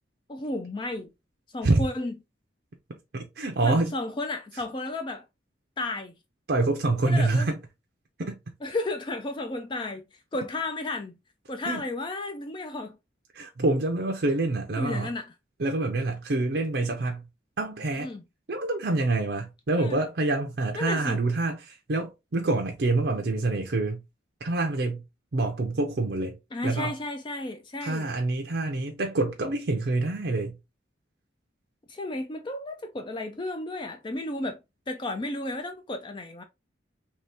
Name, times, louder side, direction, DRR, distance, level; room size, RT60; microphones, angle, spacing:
voice 1, 0.3-1.1 1.5-2.1 3.6-5.3 5.8-6.2 7.1-7.5 8.6-10.0 10.3-11.2 11.5-13.0 14.8-15.3 18.0-18.2 19.8-20.0 20.8-21.2 26.5-28.1 31.9-34.6 34.9-36.4, left 2 dB, 25° left, 0.3 m, -33 dB
voice 2, 3.1-3.9 6.5-7.6 8.2-8.4 11.7-11.8 13.3-15.1 15.6-17.2 17.6-18.1 18.5-24.0 24.4-25.0 25.3-26.4 26.6-26.9 27.8-30.5, right 2 dB, 60° right, 0.6 m, -26 dB
3.0 x 2.8 x 3.3 m
head